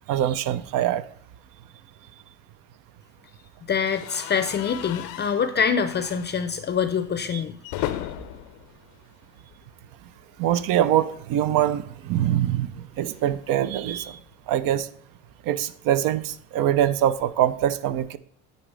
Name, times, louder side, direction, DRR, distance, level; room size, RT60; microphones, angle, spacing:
voice 1, 0.1-1.0 7.3-7.4 10.4-14.2 14.5-14.9 15.4-18.2, right 11 dB, 70° right, 0.6 m, -23 dB
voice 2, 3.7-7.6, left 6 dB, 30° left, 0.5 m, -25 dB
sound 1, 3.9-9.9 10.2-10.4 10.7-10.8 12.0-14.4, left 13 dB, 80° left, 0.6 m, -38 dB
9.6 x 4.1 x 3.3 m
cardioid pair, 95°, 34 cm